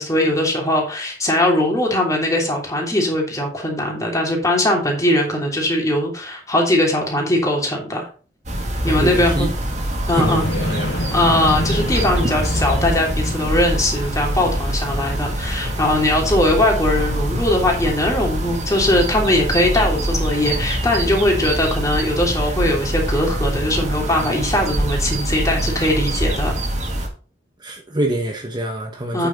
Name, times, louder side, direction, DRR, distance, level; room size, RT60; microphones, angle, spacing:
voice 1, 0.0-8.1 8.8-9.5 10.1-10.5 10.9-26.5 29.1-29.3, left 1 dB, 20° left, 3.1 m, -20 dB
sound 1, 8.5-27.1, right 1 dB, 40° right, 2.1 m, -24 dB
voice 2, 8.8-9.5 10.1-10.9 27.6-29.3, right 1 dB, 25° right, 1.3 m, -25 dB
sound 2, 10.1-15.5, left 1 dB, 85° left, 1.8 m, -27 dB
8.8 x 6.8 x 3.9 m
head